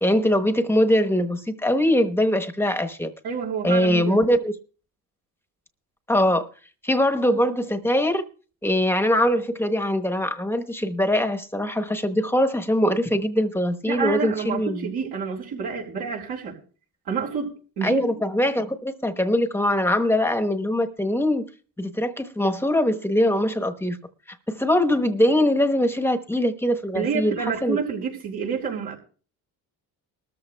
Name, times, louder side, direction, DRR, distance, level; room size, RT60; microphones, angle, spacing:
voice 1, 0.0-3.1 3.6-4.5 6.1-6.5 6.8-8.3 8.6-14.9 17.8-21.4 21.8-24.0 24.3-27.3 27.6-27.8, left 1 dB, 5° left, 1.0 m, -22 dB
voice 2, 3.2-4.2 13.9-16.6 17.1-18.0 26.9-29.0, right 6 dB, 80° right, 4.2 m, -28 dB
20.5 x 13.5 x 2.2 m
cardioid pair, 90°, 38 cm